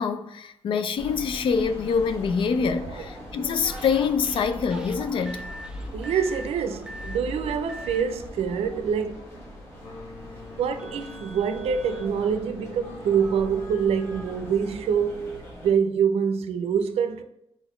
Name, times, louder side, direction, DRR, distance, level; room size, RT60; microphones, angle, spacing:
voice 1, 0.0-5.4, left 6 dB, 55° left, 0.4 m, -25 dB
sound 1, 0.9-15.7, left 1 dB, 25° left, 1.5 m, -41 dB
sound 2, 3.7-8.0 9.2-9.3 10.8-12.1, equal, 10° right, 0.4 m, -43 dB
voice 2, 5.9-9.3 10.6-17.2, right 7 dB, 75° right, 0.5 m, -25 dB
sound 3, 9.8-15.2, left 3 dB, 75° left, 1.1 m, -46 dB
4.0 x 4.0 x 3.1 m
wide cardioid pair, 165°, 10 cm